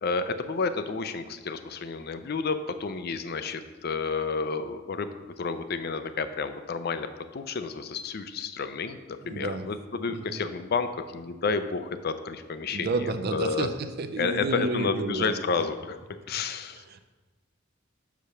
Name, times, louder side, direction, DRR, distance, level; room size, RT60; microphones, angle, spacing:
voice 1, 0.0-13.7 14.2-16.8, left 4 dB, 50° left, 10 dB, 0.5 m, -31 dB
voice 2, 9.2-9.7 10.1-10.4 12.7-15.3 16.7-17.0, right 3 dB, 50° right, 9 dB, 0.5 m, -31 dB
6.7 x 5.0 x 5.7 m, 1.2 s
head